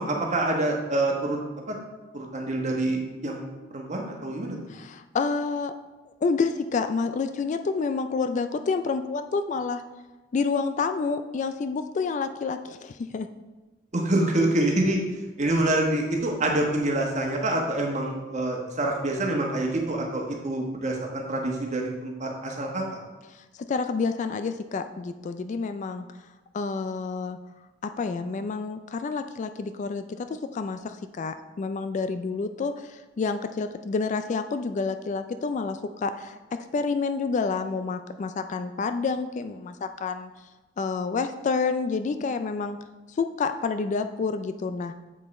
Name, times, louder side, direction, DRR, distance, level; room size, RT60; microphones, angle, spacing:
voice 1, 0.0-1.4 1.7-1.8 2.1-4.6 13.9-15.0 15.4-23.0, right 1 dB, 40° right, 0 dB, 1.3 m, -26 dB
voice 2, 4.7-5.7 6.2-9.8 10.3-13.3 23.7-26.1 26.5-27.4 27.8-36.4 36.7-40.3 40.8-42.8 43.1-44.9, left 4 dB, 40° left, 9 dB, 0.3 m, -28 dB
7.5 x 5.4 x 4.1 m, 1.1 s
head